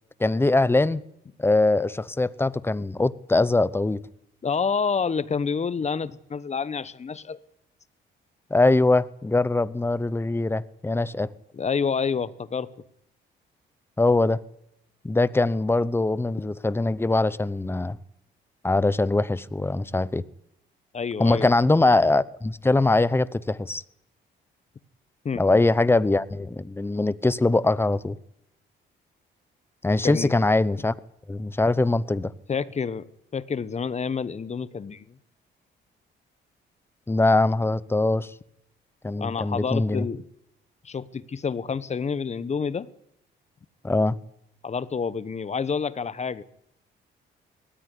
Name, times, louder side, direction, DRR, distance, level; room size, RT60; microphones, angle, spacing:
voice 1, 0.2-1.0 1.4-4.0 8.5-11.3 14.0-14.4 15.0-18.0 18.6-20.2 21.2-23.8 25.3-28.2 29.8-30.9 31.3-32.3 37.1-38.3 39.0-40.1 43.8-44.2, left 2 dB, 10° left, 18 dB, 0.8 m, -22 dB
voice 2, 4.4-7.4 11.5-12.7 20.9-21.5 25.2-25.4 30.0-30.3 32.5-33.0 33.3-35.1 39.2-40.2 40.8-42.9 44.6-46.4, left 5 dB, 35° left, 17 dB, 1.1 m, -28 dB
19.0 x 14.0 x 9.9 m, 0.79 s
cardioid pair, 90°, 20 cm